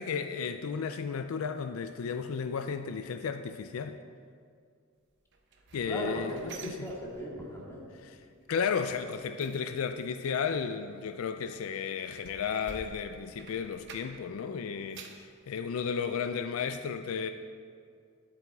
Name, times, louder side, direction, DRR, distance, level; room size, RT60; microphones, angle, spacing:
voice 1, 0.0-4.0 5.7-6.9 8.0-8.2 8.5-17.3, left 6 dB, 75° left, 9 dB, 0.4 m, -34 dB
sound 1, 5.3-7.6 7.9-8.3 8.6-14.4 14.7-15.3 15.8-15.9 16.3-16.4, right 4 dB, 55° right, 0.8 m, -51 dB
voice 2, 5.8-8.0, equal, 15° left, -5 dB, 2.0 m, -38 dB
10.5 x 8.7 x 4.1 m, 2.2 s
head